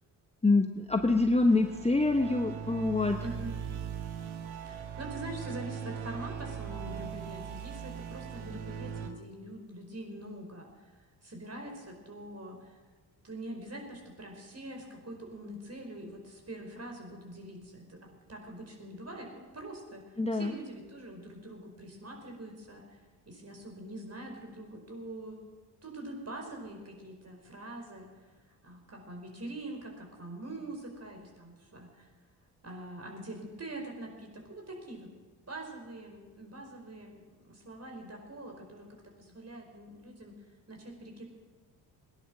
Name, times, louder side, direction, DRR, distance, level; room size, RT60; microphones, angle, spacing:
voice 1, 0.4-3.2 20.2-20.5, left 3 dB, 10° left, 5 dB, 1.1 m, -25 dB
sound 1, 0.9-9.1, right 8 dB, 65° right, 1.7 m, -40 dB
voice 2, 3.2-3.7 4.7-10.9 11.2-12.8 13.2-20.0 20.3-23.0 23.2-25.4 25.8-28.1 28.6-32.1 32.6-35.1 35.5-40.3 40.7-41.2, right 1 dB, 30° right, 2 dB, 4.9 m, -44 dB
18.5 x 10.5 x 6.1 m, 1.3 s
hypercardioid pair, 45°, 50 cm